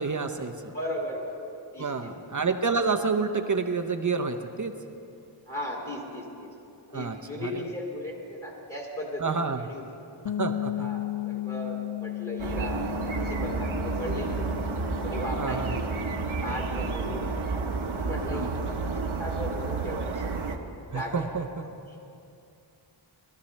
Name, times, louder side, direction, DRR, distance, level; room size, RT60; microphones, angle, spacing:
voice 1, 0.0-0.7 1.8-4.7 6.9-7.7 9.2-9.7 10.4-10.9 15.4-15.8 18.3-18.5 20.9-21.6, right 4 dB, 40° right, 6 dB, 0.7 m, -29 dB
voice 2, 0.7-2.1 5.5-6.5 6.9-9.3 9.7-9.8 10.8-12.8 13.1-14.7 15.0-15.9 16.4-17.3 17.9-18.6 18.9-20.2 20.8-21.2, left 1 dB, 30° left, -3 dB, 2.3 m, -36 dB
sound 1, 10.2-19.9, left 14 dB, 70° left, 0.5 m, -37 dB
sound 2, 12.4-20.6, right 4 dB, 75° right, 1.1 m, -31 dB
21.0 x 13.0 x 3.2 m, 2.6 s
wide cardioid pair, 90°, 49 cm